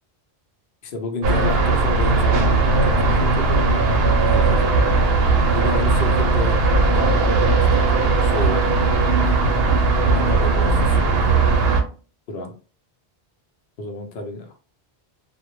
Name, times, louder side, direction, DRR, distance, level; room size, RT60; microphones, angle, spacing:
voice 1, 0.8-3.9 4.2-4.8 5.5-8.6 10.0-11.2 12.3-12.5 13.8-14.6, left 2 dB, 65° left, 3 dB, 0.7 m, -30 dB
sound 1, 1.2-11.8, right 3 dB, 70° right, 0.8 m, -18 dB
2.1 x 2.1 x 2.9 m, 0.37 s
omnidirectional pair, 1.1 m